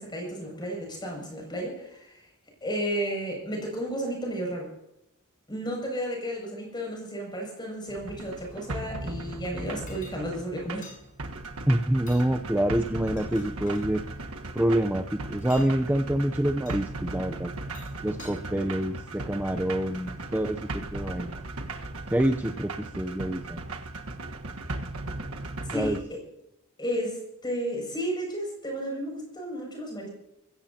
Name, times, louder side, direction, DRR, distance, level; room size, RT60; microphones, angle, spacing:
voice 1, 0.0-2.2 2.6-4.7 5.5-10.9 25.7-26.2 26.8-30.1, equal, 20° left, 0 dB, 7.0 m, -33 dB
sound 1, 7.9-26.0, right 2 dB, 80° right, 1.5 m, -37 dB
sound 2, 9.9-10.2 10.8-11.0 12.0-12.3 13.0-13.9 15.4-15.7 16.7-16.8 17.5-18.3, left 3 dB, 40° left, 6.6 m, -48 dB
voice 2, 11.7-14.0 14.5-17.5 18.0-21.3 22.1-23.6 25.7-26.0, right 1 dB, 10° right, 6 dB, 0.7 m, -26 dB
23.5 x 16.5 x 2.9 m, 0.81 s
head